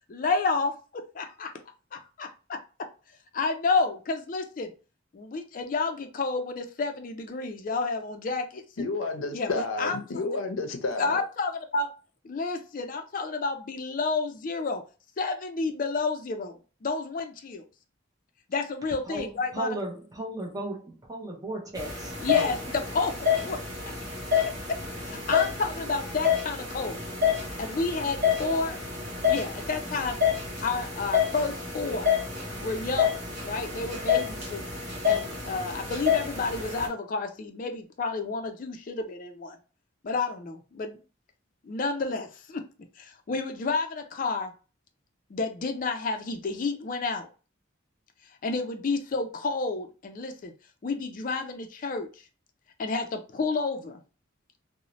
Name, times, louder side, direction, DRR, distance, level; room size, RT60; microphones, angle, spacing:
voice 1, 0.1-1.5 1.9-2.6 3.3-4.7 5.1-8.9 9.3-10.2 11.0-11.9 12.2-14.8 15.2-17.6 18.5-19.7 22.2-23.6 24.4-27.1 27.6-28.8 29.3-30.2 30.6-32.1 32.6-34.7 35.1-39.6 40.0-41.0 41.6-42.6 43.0-44.5 45.3-47.3 48.4-50.5 50.8-52.1 52.8-54.0, left 3 dB, 40° left, 0.4 m, -30 dB
voice 2, 8.8-11.2, left 3 dB, 90° left, 0.6 m, -31 dB
voice 3, 19.0-22.6 23.5-23.6, right 1 dB, 20° right, 0.6 m, -35 dB
sound 1, 21.8-36.9, left 7 dB, 45° right, 0.9 m, -29 dB
2.6 x 2.0 x 2.9 m
head